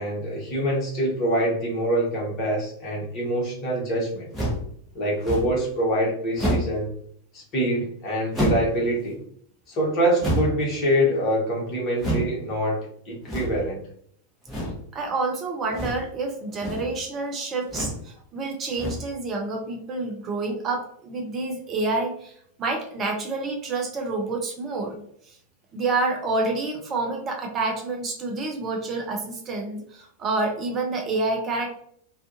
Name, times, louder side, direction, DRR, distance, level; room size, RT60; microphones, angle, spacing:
voice 1, 0.0-4.3 4.9-6.9 7.3-9.1 9.7-13.8, equal, 35° left, -2 dB, 1.0 m, -25 dB
sound 1, 4.3-4.7 5.2-5.6 6.3-6.8 8.3-8.8 10.2-10.7 12.0-12.3 13.2-13.7 14.5-14.8 15.7-16.1 16.5-16.9 17.7-18.0 18.7-19.2, right 1 dB, 5° right, 1.0 m, -28 dB
voice 2, 14.9-24.9 25.3-25.4 25.7-31.8, right 3 dB, 30° right, 1 dB, 0.5 m, -28 dB
2.4 x 2.4 x 2.5 m, 0.64 s
figure-of-eight pair, 90°, 0 cm